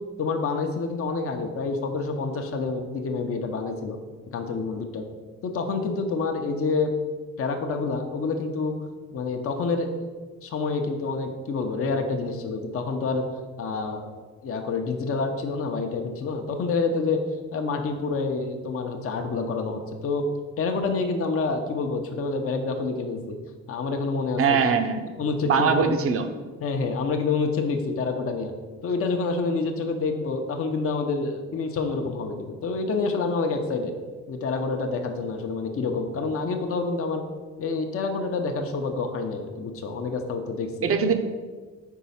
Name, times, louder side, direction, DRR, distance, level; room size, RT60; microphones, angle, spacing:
voice 1, 0.2-4.0 4.3-5.0 5.4-6.9 7.4-8.7 9.1-10.0 10.4-13.3 13.6-14.1 14.4-17.2 17.5-20.3 20.6-23.4 23.7-24.7 25.2-25.9 26.6-28.5 28.8-33.9 34.3-37.2 37.6-40.9, left 4 dB, 50° left, 4 dB, 0.7 m, -27 dB
voice 2, 24.4-25.0 25.5-26.3 40.8-41.1, right 6 dB, 50° right, 7 dB, 0.7 m, -21 dB
4.6 x 4.1 x 5.5 m, 1.4 s
cardioid pair, 90°, 30 cm